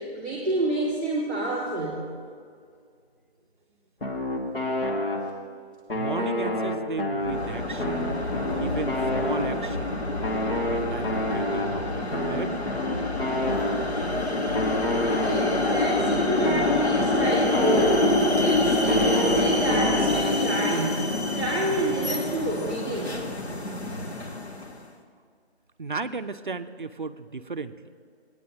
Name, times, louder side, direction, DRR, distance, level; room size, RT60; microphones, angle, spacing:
voice 1, 0.0-2.1 15.1-23.2, right 1 dB, 10° left, -13 dB, 1.0 m, -29 dB
sound 1, 4.0-5.6 5.9-9.9 10.2-14.1 14.5-18.5 18.9-20.7, left 1 dB, 55° left, 1.3 m, -29 dB
voice 2, 5.9-8.1 8.6-10.0 10.4-12.7 25.8-27.8, right 4 dB, 50° right, 10 dB, 0.4 m, -34 dB
sound 2, 7.2-20.2, left 1 dB, 15° right, 2.5 m, -37 dB
sound 3, 7.3-24.8, left 2 dB, 75° left, 1.4 m, -27 dB
18.0 x 9.5 x 2.8 m, 2.1 s
figure-of-eight pair, 175°, 33 cm